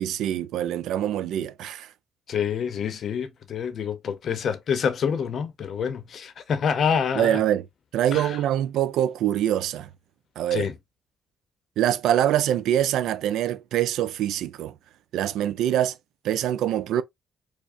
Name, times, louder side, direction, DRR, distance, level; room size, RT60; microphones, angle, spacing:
voice 1, 0.0-1.9 7.1-7.7 7.9-9.9 10.4-10.7 11.8-14.7 15.1-16.0 16.2-17.0, right 11 dB, 85° right, 0.4 m, -24 dB
voice 2, 2.3-7.4 8.1-8.4 10.5-10.7, left 7 dB, 60° left, 0.7 m, -27 dB
4.8 x 2.0 x 2.6 m
cardioid pair, 90°, 0 cm